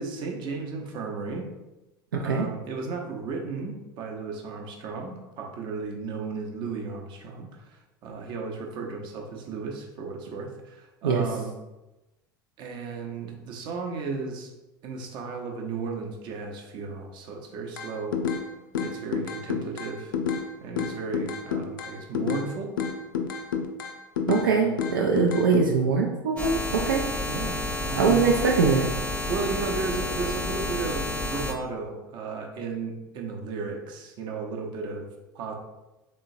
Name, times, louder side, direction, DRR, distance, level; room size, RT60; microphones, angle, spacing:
voice 1, 0.0-1.4 2.2-11.5 12.6-14.5 14.8-18.2 18.8-20.1 20.6-22.7 24.4-24.8 27.3-28.3 29.3-35.1 35.3-35.5, right 4 dB, 40° right, 2 dB, 0.7 m, -34 dB
voice 2, 2.1-2.5 11.0-11.3 24.3-27.1 28.0-28.9, right 5 dB, 70° right, 0 dB, 0.4 m, -22 dB
sound 1, 17.8-18.4 18.7-20.5 20.8-22.5 22.8-24.5 24.8-25.7, left 7 dB, 65° left, 0.4 m, -29 dB
sound 2, 26.4-31.5, left 1 dB, 10° left, 0.6 m, -30 dB
3.7 x 3.1 x 2.6 m, 1.0 s
figure-of-eight pair, 70°, 12 cm